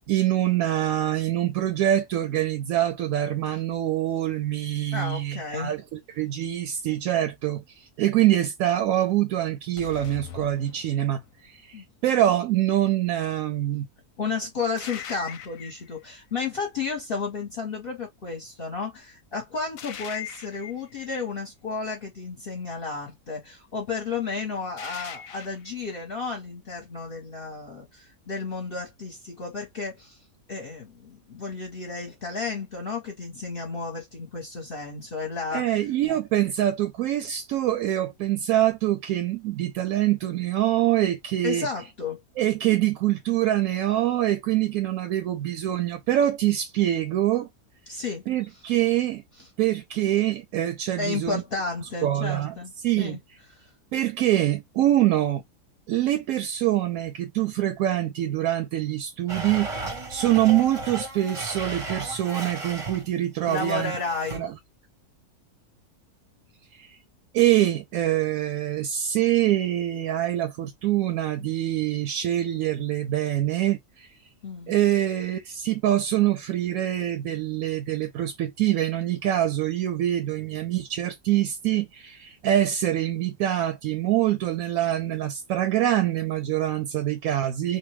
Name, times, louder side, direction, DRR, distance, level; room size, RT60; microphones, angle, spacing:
voice 1, 0.1-5.8 6.2-13.9 35.5-41.7 42.4-47.5 48.3-49.2 49.6-51.4 52.0-52.6 52.8-53.2 53.9-55.4 55.9-63.9 64.3-64.5 66.7-67.0 67.3-74.1 74.7-87.8, right 13 dB, 70° right, 0.9 m, -25 dB
voice 2, 4.9-5.7 11.7-11.8 14.2-30.2 30.5-35.8 41.4-42.2 47.9-48.2 51.0-53.2 63.5-64.4 74.4-74.7, left 4 dB, 45° left, 0.9 m, -32 dB
sound 1, 9.8-11.4 14.8-16.0 19.8-20.9 24.8-25.7, left 8 dB, 70° left, 0.9 m, -40 dB
Domestic sounds home sounds, 59.3-63.1 63.4-64.4, right 2 dB, 30° right, 0.6 m, -35 dB
2.8 x 2.2 x 3.0 m
omnidirectional pair, 1.7 m